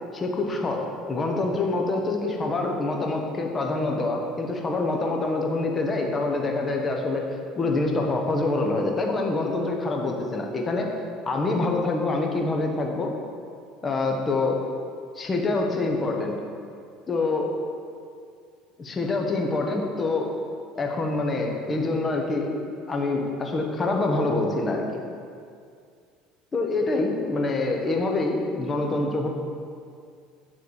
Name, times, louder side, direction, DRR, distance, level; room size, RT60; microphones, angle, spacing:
voice 1, 0.1-7.3 7.5-10.9 11.2-13.1 13.8-14.6 15.1-16.3 17.1-17.5 18.8-20.3 20.8-22.5 22.9-25.0 26.5-29.3, left 2 dB, 25° left, 1 dB, 1.2 m, -26 dB
9.6 x 3.5 x 6.4 m, 2.3 s
supercardioid pair, 105°, 0 cm